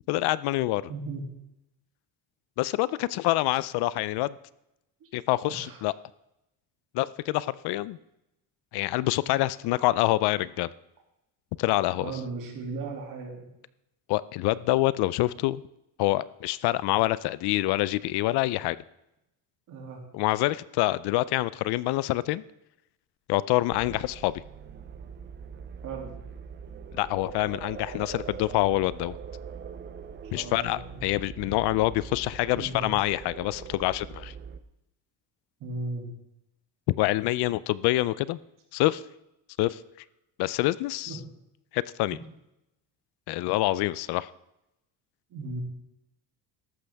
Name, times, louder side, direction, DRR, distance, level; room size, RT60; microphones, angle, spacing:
voice 1, 0.1-0.9 2.6-4.4 5.1-5.9 6.9-8.0 8.7-10.7 11.6-12.2 14.1-15.6 16.0-18.8 20.1-22.4 23.3-24.3 26.9-29.2 30.3-34.3 37.0-38.4 38.7-39.0 39.6-39.8 40.4-41.2 41.7-42.2 43.3-44.3, left 17 dB, 75° left, 18 dB, 0.5 m, -26 dB
voice 2, 0.9-1.2 5.0-5.1 5.5-5.8 11.9-13.5 19.7-20.0 25.8-26.1 30.2-31.0 32.6-33.0 35.6-36.1 41.1-41.2 45.3-45.6, right 3 dB, 50° right, 1 dB, 2.7 m, -36 dB
sound 1, 23.7-34.6, right 7 dB, 30° right, 0.5 m, -42 dB
14.0 x 11.5 x 3.5 m, 0.88 s
cardioid pair, 165°, 40 cm